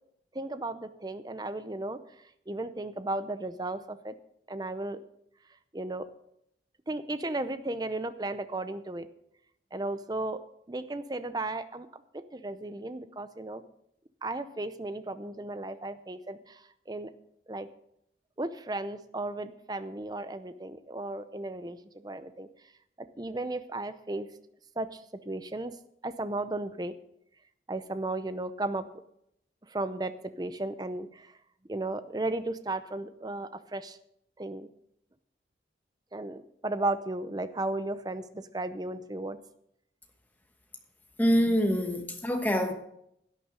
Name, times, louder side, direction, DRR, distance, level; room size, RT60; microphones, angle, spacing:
voice 1, 0.3-2.0 2.5-4.1 4.5-5.0 5.7-6.1 6.9-9.1 9.7-10.4 10.7-12.0 12.3-13.6 14.2-17.1 17.5-17.7 18.4-22.5 23.0-24.3 24.8-25.7 26.0-26.9 27.7-28.8 29.7-30.1 30.4-31.3 31.7-34.0 34.4-34.7 36.1-39.4, right 2 dB, 20° right, 0.6 m, -35 dB
voice 2, 41.2-42.7, equal, 10° left, 1.1 m, -25 dB
11.0 x 9.9 x 5.1 m
head